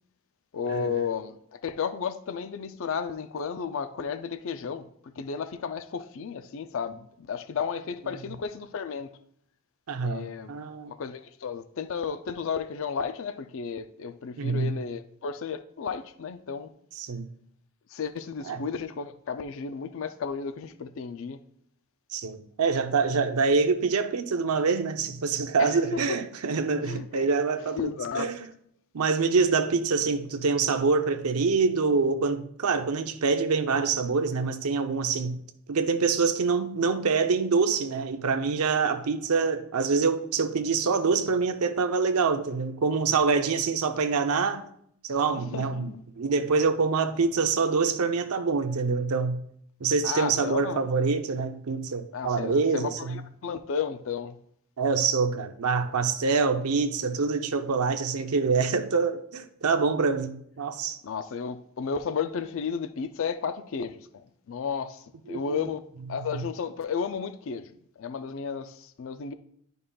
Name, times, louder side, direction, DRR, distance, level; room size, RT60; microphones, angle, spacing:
voice 1, 0.5-9.1 10.0-10.5 10.9-16.7 17.9-21.4 25.6-26.2 26.8-27.2 27.8-28.3 45.3-46.0 50.0-50.8 52.1-54.4 61.0-65.8 66.1-69.3, left 6 dB, 60° left, 0.4 m, -33 dB
voice 2, 9.9-10.9 14.4-14.8 17.0-17.3 18.5-18.6 22.1-28.4 28.9-35.4 35.7-44.7 45.0-45.9 46.2-49.4 49.8-53.2 54.8-61.0 65.3-65.7 66.3-66.4, right 4 dB, 85° right, 0.6 m, -25 dB
11.0 x 5.4 x 2.3 m
head